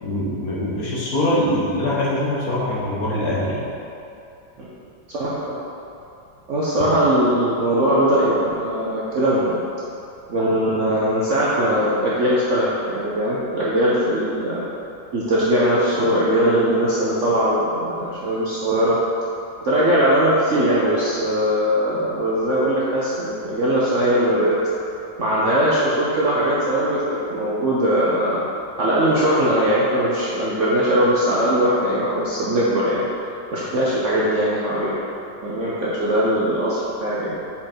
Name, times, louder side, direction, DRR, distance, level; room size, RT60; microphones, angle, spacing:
voice 1, 0.0-3.6, left 1 dB, 55° left, -6 dB, 1.4 m, -23 dB
voice 2, 5.1-5.6 6.5-9.6 10.3-14.6 15.1-19.0 19.6-24.6 25.2-27.0 27.3-28.4 28.8-33.0 33.5-34.9 35.4-37.3, equal, 55° right, -7 dB, 0.9 m, -20 dB
5.6 x 4.9 x 4.4 m, 2.7 s
omnidirectional pair, 2.0 m